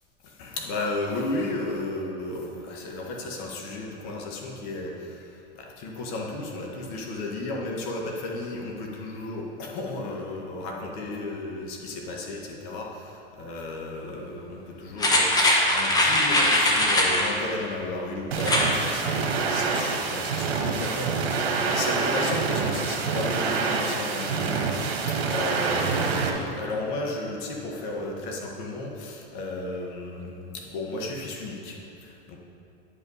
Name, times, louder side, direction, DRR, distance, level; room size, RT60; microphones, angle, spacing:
voice 1, 0.2-32.4, left 2 dB, 50° left, 0 dB, 1.5 m, -34 dB
sound 1, 15.0-17.3 18.3-18.7 19.1-19.2, left 1 dB, 10° left, 1.1 m, -21 dB
sound 2, 18.3-26.3, right 5 dB, 80° right, 1.4 m, -26 dB
10.0 x 5.7 x 5.5 m, 2.8 s
hypercardioid pair, 125°, 31 cm